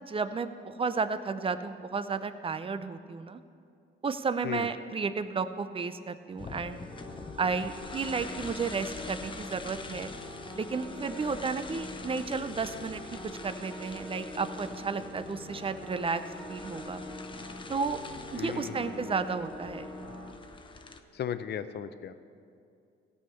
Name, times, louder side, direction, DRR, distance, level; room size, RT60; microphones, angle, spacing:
voice 1, 0.0-3.4 4.0-6.9 7.4-10.1 10.5-16.2 16.5-17.0 17.7-18.0 18.3-19.9, right 5 dB, 25° right, 11 dB, 0.6 m, -33 dB
sound 1, 6.4-21.0, left 3 dB, 25° left, 0.8 m, -45 dB
sound 2, 6.9-20.3, left 1 dB, ahead, 2.0 m, -44 dB
voice 2, 18.4-19.1 21.1-22.1, left 8 dB, 55° left, 11 dB, 0.7 m, -36 dB
16.0 x 5.7 x 7.0 m, 2.5 s
cardioid pair, 90°, 20 cm